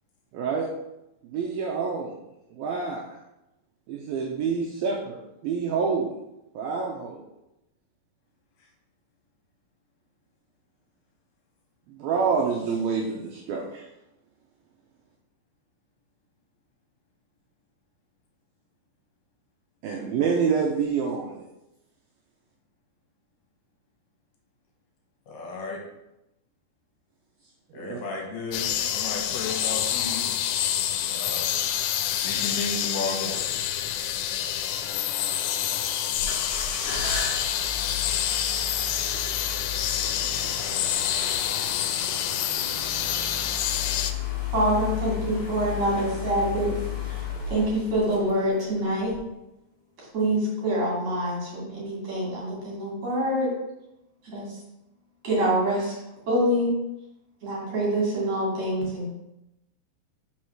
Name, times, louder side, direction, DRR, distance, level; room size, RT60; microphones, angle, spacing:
voice 1, 0.3-0.7 1.2-2.1 2.5-3.0 3.9-6.1 6.5-7.2 11.9-13.9 19.8-21.5 27.7-28.0, right 5 dB, 80° right, -2 dB, 2.3 m, -27 dB
voice 2, 25.3-25.8 27.7-30.4 30.9-31.6 32.1-33.5, left 3 dB, 70° left, -1 dB, 2.9 m, -34 dB
sound 1, 28.5-44.1, left 10 dB, 85° left, 2.8 m, -27 dB
sound 2, 36.1-48.6 49.1-49.2, left 6 dB, 45° left, 1.8 m, -34 dB
voice 3, 44.5-46.7 47.1-47.2 47.5-49.1 50.0-53.5 54.2-54.6 55.2-55.9 56.3-56.7 57.4-59.1, right 1 dB, 45° right, -6 dB, 3.5 m, -25 dB
6.3 x 4.8 x 6.0 m, 0.90 s
omnidirectional pair, 5.0 m